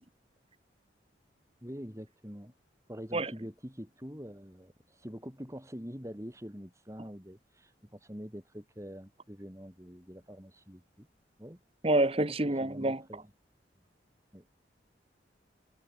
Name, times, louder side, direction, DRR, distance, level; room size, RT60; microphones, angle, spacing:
voice 1, 1.6-2.5 2.9-11.1 11.4-11.6 12.6-13.3 14.3-14.5, equal, 15° right, 3.8 m, -45 dB
voice 2, 11.8-13.0, right 2 dB, 30° right, 1.3 m, -27 dB
head